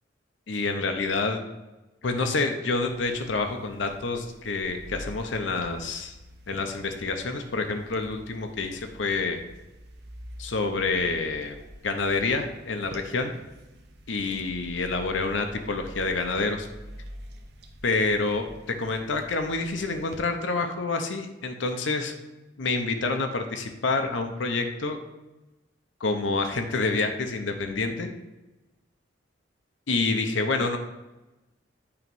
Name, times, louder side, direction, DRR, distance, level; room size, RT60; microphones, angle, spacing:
voice 1, 0.5-1.4 2.0-6.1 6.5-9.4 10.4-11.6 11.8-13.3 14.1-16.7 17.8-22.1 22.6-25.0 26.0-28.1 29.9-30.8, left 3 dB, 90° left, 5 dB, 0.8 m, -28 dB
sound 1, 2.8-20.2, equal, 60° right, 0.9 m, -47 dB
8.6 x 3.1 x 5.4 m, 1.0 s
head